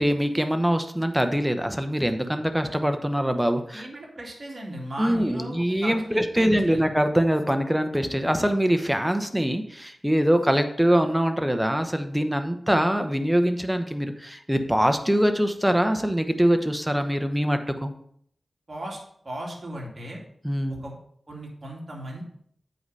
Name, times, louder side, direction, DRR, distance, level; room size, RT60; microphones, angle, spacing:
voice 1, 0.0-3.9 5.0-17.9 20.4-20.8, equal, 5° right, 7 dB, 0.9 m, -23 dB
voice 2, 3.7-6.8 18.7-19.0 19.2-20.2 20.7-20.9 21.3-22.2, right 1 dB, 45° right, -2 dB, 2.6 m, -37 dB
7.9 x 4.8 x 5.4 m, 0.65 s
wide cardioid pair, 65°, 0 cm